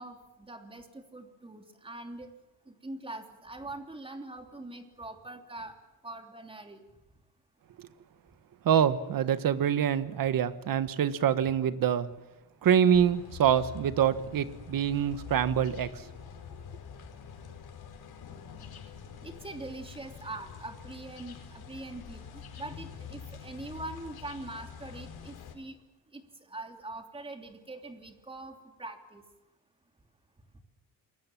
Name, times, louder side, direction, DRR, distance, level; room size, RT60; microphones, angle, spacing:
voice 1, 0.0-2.3 2.7-5.7 6.0-6.8 19.2-25.8 26.1-26.2 26.5-29.2, right 2 dB, 15° right, 4 dB, 3.1 m, -43 dB
voice 2, 8.6-12.1 12.6-16.0, right 9 dB, 60° right, 12 dB, 1.7 m, -25 dB
sound 1, 12.9-25.5, left 7 dB, 75° left, 4.8 m, -46 dB
28.0 x 22.5 x 7.5 m, 1.1 s
cardioid pair, 145°, 37 cm